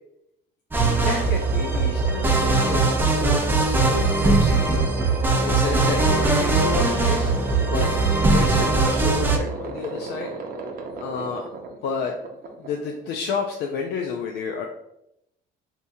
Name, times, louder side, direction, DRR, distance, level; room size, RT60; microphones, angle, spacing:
sound 1, 0.7-9.4, right 3 dB, 10° right, 0.5 m, -20 dB
voice 1, 0.8-2.8 3.2-3.4 3.9-4.9 5.4-10.3 11.0-11.4 11.8-12.1 12.6-14.7, left 5 dB, 80° left, 2 dB, 0.4 m, -31 dB
sound 2, 0.8-13.4, right 2 dB, 60° right, 0.6 m, -34 dB
3.4 x 2.8 x 2.7 m, 0.81 s
cardioid pair, 110°, 17 cm